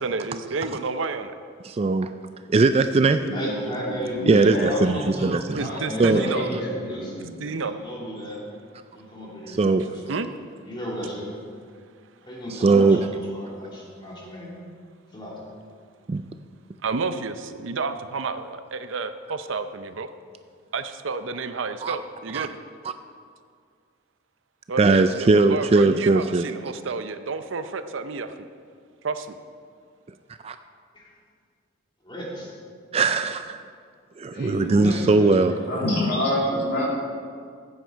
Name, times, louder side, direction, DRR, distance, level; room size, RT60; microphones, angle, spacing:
voice 1, 0.0-1.4 5.2-6.5 7.4-7.7 10.1-10.3 16.8-20.1 20.7-22.6 24.7-28.5 29.0-29.4, right 4 dB, 70° right, 10 dB, 0.6 m, -30 dB
voice 2, 1.6-2.1 2.5-3.2 4.3-5.7 6.0-6.2 6.5-6.6 9.5-9.8 12.5-13.0 16.1-16.2 21.8-22.0 22.3-22.5 22.8-22.9 24.8-26.5 30.4-30.6 32.9-33.6 34.2-35.5, right 3 dB, 30° right, 9 dB, 0.3 m, -20 dB
voice 3, 3.3-8.4 8.9-10.1 10.6-11.3 12.2-14.6 15.1-15.4 30.9-31.1 32.0-32.5 34.6-35.6, equal, 25° left, -5 dB, 2.9 m, -35 dB
voice 4, 4.2-4.8 5.7-7.3 34.3-34.7 35.6-36.9, left 1 dB, 55° left, -3 dB, 2.9 m, -27 dB
14.5 x 9.0 x 4.6 m, 2.1 s
head